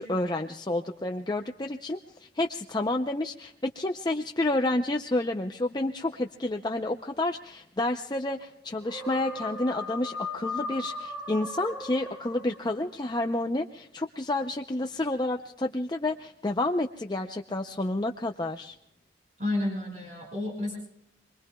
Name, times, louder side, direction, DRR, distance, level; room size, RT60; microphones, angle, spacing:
voice 1, 0.0-18.8, left 2 dB, 20° left, 4 dB, 0.6 m, -30 dB
sound 1, 8.8-12.9, left 2 dB, 10° right, 2.0 m, -37 dB
voice 2, 19.4-20.7, left 1 dB, 40° right, -2 dB, 5.9 m, -30 dB
28.0 x 22.0 x 2.3 m, 0.76 s
head